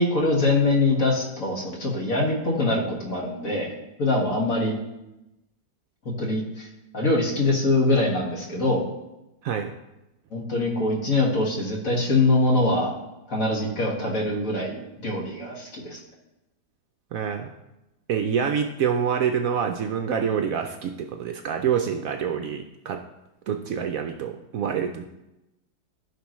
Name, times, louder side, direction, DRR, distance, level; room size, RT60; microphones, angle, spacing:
voice 1, 0.0-3.7 4.0-4.8 6.2-6.7 6.9-8.8 10.3-12.9 13.3-16.0, left 2 dB, 55° left, -1 dB, 2.1 m, -23 dB
voice 2, 17.1-17.5 18.1-23.0 23.5-25.1, right 7 dB, 70° right, 5 dB, 0.9 m, -26 dB
15.0 x 5.2 x 3.1 m, 0.93 s
omnidirectional pair, 1.8 m